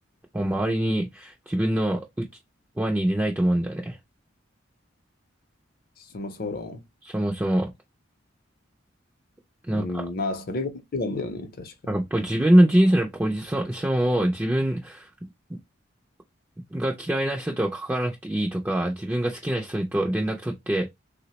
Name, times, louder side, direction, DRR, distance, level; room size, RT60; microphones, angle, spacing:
voice 1, 0.3-2.3 2.8-4.0 7.0-7.7 9.7-10.0 11.9-15.1 15.5-15.6 16.7-20.9, right 1 dB, 10° right, 0.4 m, -24 dB
voice 2, 6.0-6.9 9.7-11.7, left 2 dB, 50° left, 0.5 m, -31 dB
3.3 x 2.0 x 2.8 m
head